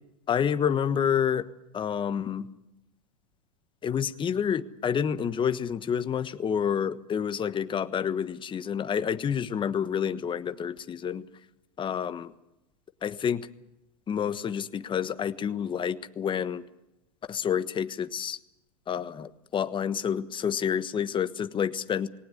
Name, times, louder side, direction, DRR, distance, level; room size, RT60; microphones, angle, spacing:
voice 1, 0.3-1.4 1.7-2.5 3.8-11.2 11.8-12.3 13.0-13.5 14.1-16.6 17.3-18.4 18.9-22.1, left 8 dB, 25° left, 11 dB, 1.3 m, -28 dB
20.0 x 18.5 x 9.5 m, 0.88 s
hypercardioid pair, 105°, 19 cm